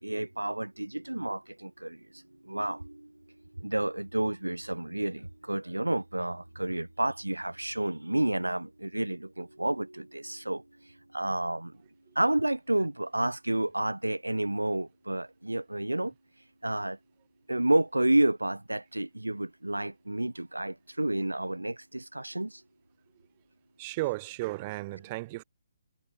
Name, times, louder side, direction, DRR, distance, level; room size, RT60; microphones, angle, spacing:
voice 1, 0.0-3.1 3.6-11.7 12.1-16.1 16.6-17.0 17.5-22.6, right 1 dB, 80° right, 1.0 m, -30 dB
voice 2, 23.8-25.4, right 21 dB, 25° right, 3.0 m, -34 dB
figure-of-eight pair, 135°, 0 cm